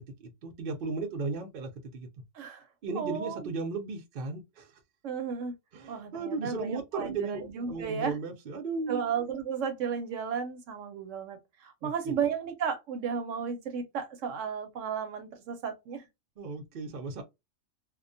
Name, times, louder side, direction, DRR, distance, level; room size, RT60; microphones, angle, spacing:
voice 1, 0.2-2.1 2.8-4.7 5.7-9.0 11.8-12.1 16.4-17.2, right 3 dB, 55° right, 0.6 m, -36 dB
voice 2, 2.9-3.4 5.0-5.5 5.9-8.2 8.9-16.0, right 7 dB, 70° right, 0.9 m, -34 dB
2.4 x 2.2 x 2.5 m
omnidirectional pair, 1.4 m